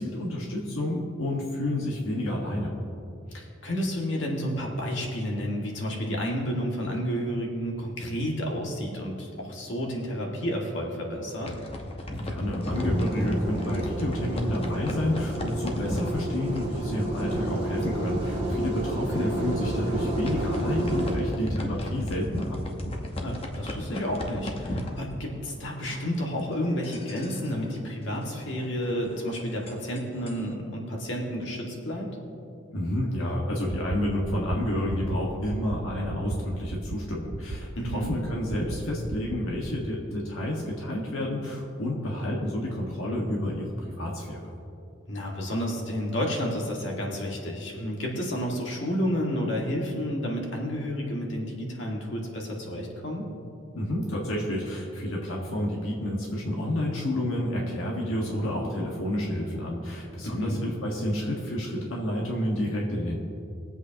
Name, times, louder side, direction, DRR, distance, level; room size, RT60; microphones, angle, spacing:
voice 1, 0.0-2.7 12.2-22.6 32.7-44.4 53.7-63.2, left 1 dB, 85° left, -2 dB, 1.6 m, -30 dB
voice 2, 3.3-11.6 19.1-19.3 23.2-32.2 37.8-38.1 45.1-53.3 60.2-60.6, equal, 60° left, -1 dB, 1.9 m, -31 dB
sound 1, 11.3-17.6 17.8-18.1 18.4-18.5 19.1-19.2 19.8-25.6 25.9-30.5, left 1 dB, 30° left, 0.9 m, -36 dB
sound 2, 12.7-21.2, right 1 dB, 25° right, 1.6 m, -30 dB
sound 3, 33.7-34.0 34.3-34.6 34.9-35.2 35.5-35.8 36.1-36.4 36.7-37.0 37.3-37.6 37.9-38.2 38.5-38.8 39.1-39.4, right 3 dB, 75° right, 0.7 m, -34 dB
22.5 x 8.0 x 2.9 m, 2.6 s
head